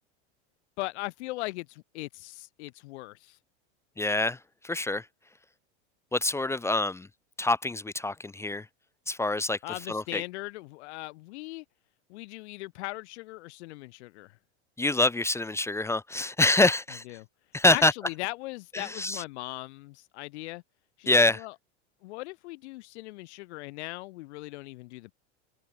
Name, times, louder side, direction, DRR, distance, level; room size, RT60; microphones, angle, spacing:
voice 1, 0.8-3.4 9.6-11.6 12.1-14.4 17.0-17.3 17.6-20.6 21.0-21.5 22.0-25.1, left 21 dB, 70° left, 6.5 m, -39 dB
voice 2, 4.0-4.4 4.6-5.0 6.1-7.1 7.4-8.7 9.1-9.6 9.9-10.2 14.8-17.0 17.5-17.9 18.7-19.2 21.1-21.4, left 2 dB, 10° left, 0.6 m, -25 dB
supercardioid pair, 125°, 35 cm